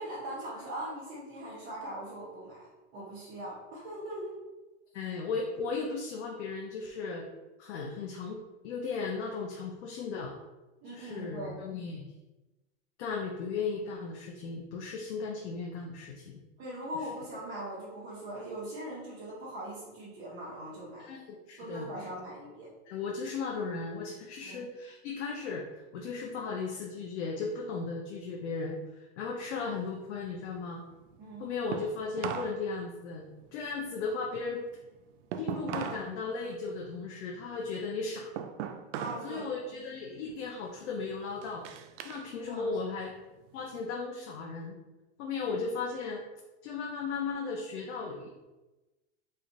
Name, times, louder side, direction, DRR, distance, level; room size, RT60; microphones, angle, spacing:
voice 1, 0.0-2.7 2.9-4.3 10.8-11.6 16.6-21.1 21.6-22.7 24.4-24.7 31.2-31.5 39.0-39.5 42.5-43.0, right 1 dB, 30° right, -11 dB, 1.0 m, -40 dB
voice 2, 4.9-7.2 7.6-10.3 10.8-12.1 13.0-16.3 21.0-21.2 21.5-21.9 22.9-25.6 25.9-30.8 31.4-33.2 33.5-34.6 35.4-38.3 39.2-41.6 42.0-43.1 43.5-44.8 45.2-46.2 46.6-48.3, left 4 dB, 75° left, -1 dB, 0.6 m, -36 dB
sound 1, 29.5-32.6 32.9-36.1 36.5-39.3 39.7-40.1 40.6-42.3 42.6-43.8, right 8 dB, 80° right, 0.5 m, -40 dB
3.2 x 2.5 x 3.8 m, 1.1 s
supercardioid pair, 155°, 35 cm